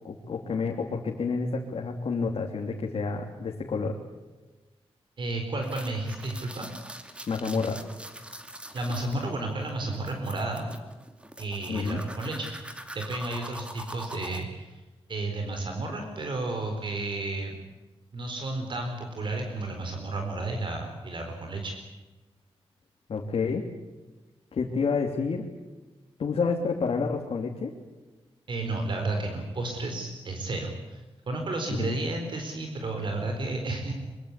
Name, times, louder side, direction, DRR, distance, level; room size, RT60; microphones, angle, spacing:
voice 1, 0.0-4.0 7.3-7.8 11.7-12.0 23.1-23.7 24.5-25.4 26.2-27.7 31.7-32.0, left 4 dB, 60° left, 0 dB, 3.0 m, -29 dB
voice 2, 5.2-6.7 8.7-10.6 11.4-12.5 12.9-14.8 15.1-17.6 18.1-21.7 28.5-33.9, right 2 dB, 50° right, 4 dB, 4.2 m, -32 dB
sound 1, 5.6-14.4, right 1 dB, 10° right, 2.4 m, -43 dB
24.0 x 23.5 x 8.3 m, 1.2 s
wide cardioid pair, 155°, 10 cm